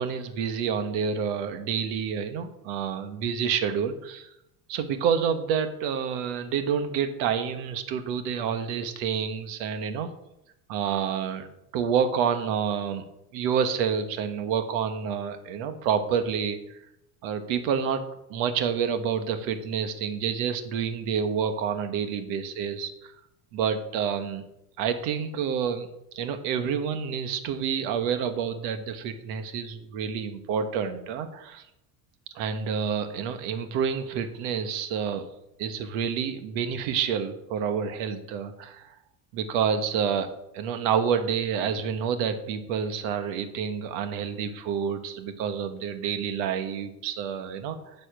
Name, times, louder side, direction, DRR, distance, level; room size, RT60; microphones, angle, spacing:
voice 1, 0.0-4.3 4.7-10.1 10.7-11.5 11.7-13.0 13.3-16.8 17.2-18.0 18.3-23.1 23.5-24.4 24.8-25.9 26.1-31.7 32.3-35.2 35.6-38.9 39.3-47.8, right 7 dB, 80° right, 9 dB, 1.4 m, -28 dB
9.9 x 7.0 x 6.7 m, 0.84 s
cardioid pair, 145°, 43 cm